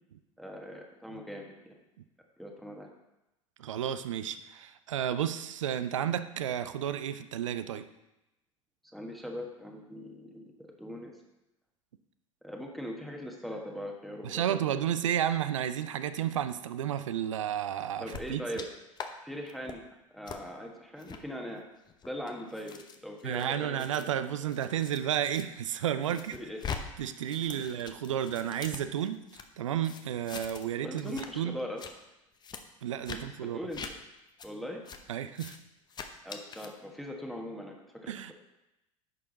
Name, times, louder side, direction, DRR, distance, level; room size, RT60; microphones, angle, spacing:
voice 1, 0.4-1.7 2.4-2.9 8.9-11.1 12.4-14.8 18.0-18.7 19.2-19.8 20.1-21.6 22.0-24.1 26.3-26.6 27.5-27.7 30.8-31.8 33.1-33.8 34.4-34.8 36.2-37.7 38.0-38.3, equal, ahead, 1 dB, 1.4 m, -40 dB
voice 2, 3.6-7.9 14.2-18.4 23.2-26.4 27.0-31.6 32.8-33.6 35.1-35.6 38.1-38.3, right 10 dB, 65° right, 12 dB, 0.6 m, -32 dB
sound 1, 18.1-18.7 19.0-19.1 19.5-19.8 20.3-20.4 21.0-21.2 21.9-25.4 25.8-26.8 27.1-29.4 29.8-30.7 31.0-31.3 31.6-31.9 32.4-32.6 33.0-33.2 33.7-33.9 34.4-34.5 34.9-35.0 35.3-35.6 35.9-36.7, left 6 dB, 25° left, 0.9 m, -43 dB
11.0 x 6.6 x 4.0 m, 0.94 s
figure-of-eight pair, 75°, 17 cm